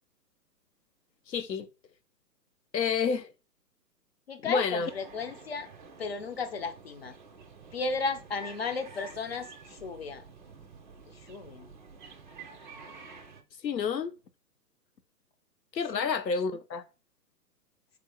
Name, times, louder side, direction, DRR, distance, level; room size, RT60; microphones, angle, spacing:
voice 1, 1.3-1.7 2.7-3.3 4.4-4.9 13.6-14.1 15.7-16.8, left 5 dB, 85° left, 0.7 m, -29 dB
voice 2, 4.3-5.7 6.0-7.2 7.7-10.2 11.1-11.7 15.9-16.1, left 4 dB, 40° left, 0.4 m, -35 dB
sound 1, 4.8-13.4, right 4 dB, 30° right, 0.4 m, -49 dB
3.3 x 3.2 x 3.7 m
figure-of-eight pair, 125°, 49 cm